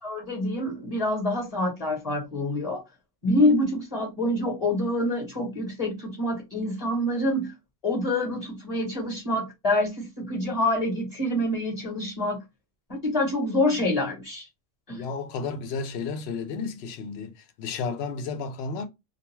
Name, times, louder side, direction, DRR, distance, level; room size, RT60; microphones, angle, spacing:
voice 1, 0.0-2.8 3.2-7.5 7.8-12.4 12.9-14.5 14.9-15.0, left 1 dB, 40° left, 0.9 m, -26 dB
voice 2, 14.9-18.9, left 5 dB, 75° left, 0.8 m, -32 dB
2.3 x 2.2 x 3.1 m
omnidirectional pair, 1.1 m